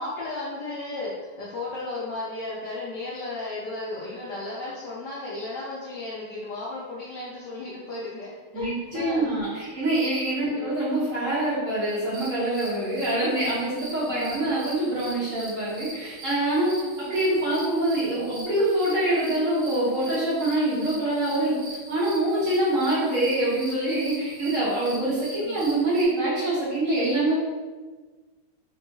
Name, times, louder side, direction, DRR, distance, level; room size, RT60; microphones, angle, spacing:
voice 1, 0.0-9.3 10.5-10.7 14.1-14.4 25.4-25.6, left 2 dB, 75° left, -6 dB, 1.0 m, -34 dB
voice 2, 8.5-21.6 21.9-27.3, right 1 dB, 55° right, -8 dB, 0.9 m, -25 dB
sound 1, 12.1-26.1, right 1 dB, 85° right, 1.6 m, -42 dB
3.5 x 2.7 x 2.6 m, 1.3 s
omnidirectional pair, 2.4 m